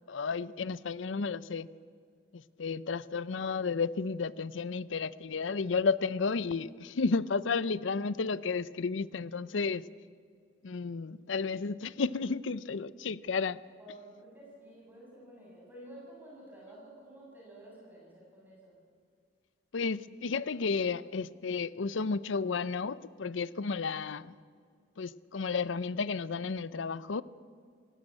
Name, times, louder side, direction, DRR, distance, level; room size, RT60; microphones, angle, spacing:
voice 1, 0.1-1.7 2.3-9.8 10.6-13.6 19.7-24.3 25.0-27.2, left 4 dB, 90° left, 18 dB, 0.6 m, -32 dB
voice 2, 13.8-18.8, right 1 dB, 10° right, -5 dB, 7.3 m, -51 dB
19.0 x 17.5 x 8.7 m, 2.2 s
head